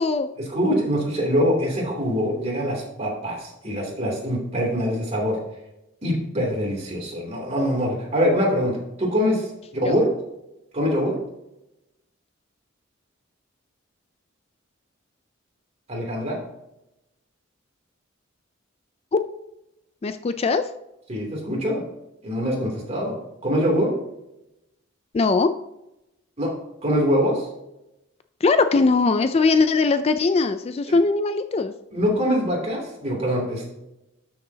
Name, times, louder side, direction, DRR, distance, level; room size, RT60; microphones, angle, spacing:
voice 1, 0.4-5.4 6.0-10.1 10.7-11.1 15.9-16.4 21.1-21.8 22.2-23.2 23.4-23.9 26.4-26.5 26.8-27.5 30.9-31.0 31.9-33.7, equal, 35° right, -2 dB, 2.8 m, -24 dB
voice 2, 20.0-20.6 25.1-25.5 28.4-31.7, left 4 dB, 30° left, 10 dB, 0.3 m, -20 dB
12.5 x 6.7 x 2.8 m, 0.90 s
head